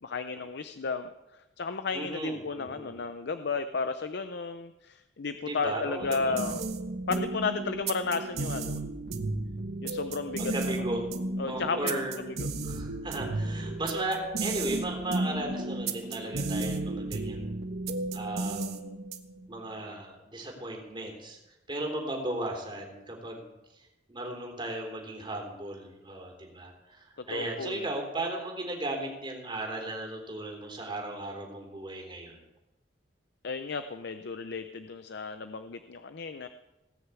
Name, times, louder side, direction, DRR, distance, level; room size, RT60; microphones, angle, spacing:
voice 1, 0.0-6.6 7.1-8.8 9.8-10.8 11.4-12.5 27.3-27.9 33.4-36.5, left 4 dB, 65° left, 10 dB, 0.6 m, -33 dB
voice 2, 1.9-3.0 5.4-6.4 10.4-11.0 11.5-12.2 12.6-17.5 18.1-18.9 19.5-21.4 21.7-23.5 24.1-32.4, right 1 dB, 25° right, 1 dB, 3.5 m, -36 dB
sound 1, 6.0-19.4, right 2 dB, 60° right, 1.2 m, -34 dB
19.0 x 6.5 x 8.2 m, 0.98 s
head